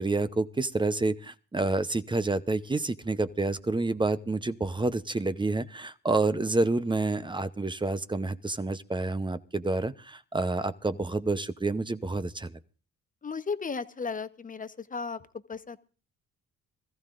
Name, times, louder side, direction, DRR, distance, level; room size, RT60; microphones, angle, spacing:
voice 1, 0.0-12.6, right 3 dB, 15° right, 0.8 m, -28 dB
voice 2, 13.2-15.8, left 5 dB, 25° left, 1.0 m, -35 dB
25.0 x 14.5 x 2.5 m
cardioid pair, 90°, 30 cm